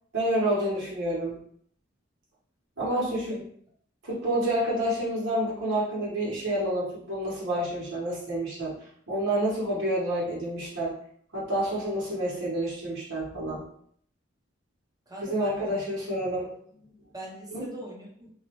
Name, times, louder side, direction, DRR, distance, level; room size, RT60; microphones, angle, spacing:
voice 1, 0.1-1.4 2.8-3.4 4.0-8.7 9.1-10.9 11.3-13.6 15.2-16.5 17.5-17.7, right 1 dB, 75° right, -6 dB, 1.3 m, -28 dB
voice 2, 2.9-3.4 15.1-15.8 16.4-16.5 17.1-18.3, right 1 dB, 20° right, -3 dB, 0.7 m, -41 dB
2.8 x 2.1 x 2.9 m, 0.63 s
head